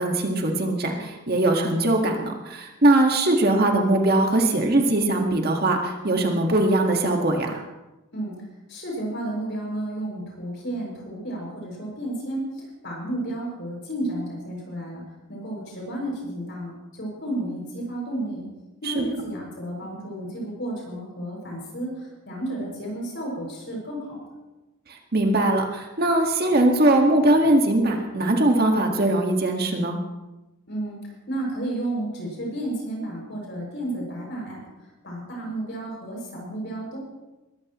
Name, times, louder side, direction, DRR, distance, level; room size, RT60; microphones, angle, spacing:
voice 1, 0.0-7.6 18.8-19.1 24.9-30.0, right 1 dB, 50° right, 2 dB, 1.8 m, -21 dB
voice 2, 8.7-15.0 15.3-18.4 18.8-24.2 30.7-31.0 31.3-34.6 35.0-37.0, right 1 dB, 60° left, -2 dB, 6.6 m, -32 dB
21.0 x 14.5 x 3.1 m, 1.0 s
head